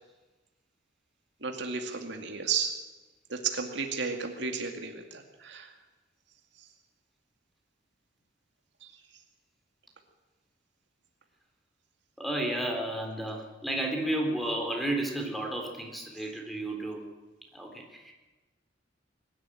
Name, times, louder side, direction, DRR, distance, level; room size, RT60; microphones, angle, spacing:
voice 1, 1.4-2.7 3.3-5.7 8.8-8.9, right 5 dB, 65° right, 4 dB, 2.4 m, -33 dB
voice 2, 12.2-17.0 17.5-18.1, right 1 dB, ahead, 2 dB, 3.7 m, -32 dB
22.0 x 12.5 x 10.0 m, 1.2 s
head